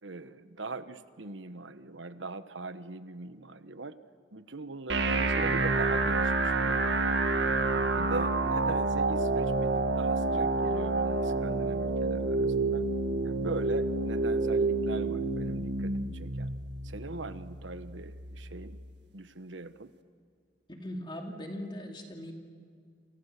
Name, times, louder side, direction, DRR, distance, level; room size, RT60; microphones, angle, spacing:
voice 1, 0.0-3.9 4.3-7.2 7.9-12.8 13.2-16.5 16.8-18.8 19.1-19.9, right 3 dB, 80° right, 11 dB, 1.3 m, -41 dB
sound 1, 4.9-18.9, right 3 dB, 65° right, 1.9 m, -29 dB
voice 2, 20.7-22.3, left 1 dB, 25° left, 2 dB, 2.5 m, -39 dB
29.0 x 28.0 x 6.8 m, 2.1 s
head